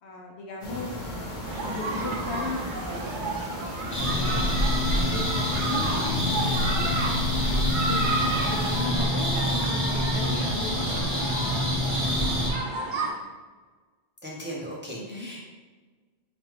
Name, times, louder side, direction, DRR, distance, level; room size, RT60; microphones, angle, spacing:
voice 1, 0.0-1.0 1.6-3.0 4.0-4.6 4.9-6.7 7.9-11.1 14.9-15.3, left 2 dB, 75° left, 0 dB, 0.8 m, -36 dB
sound 1, 0.6-8.8, left 1 dB, 40° left, 1.1 m, -37 dB
sound 2, 1.5-13.1, right 3 dB, 55° right, 0.7 m, -32 dB
sound 3, 3.9-12.5, left 1 dB, 10° left, 0.9 m, -26 dB
voice 2, 14.2-15.4, equal, 15° right, -4 dB, 0.4 m, -37 dB
4.8 x 2.3 x 3.1 m, 1.4 s
omnidirectional pair, 1.2 m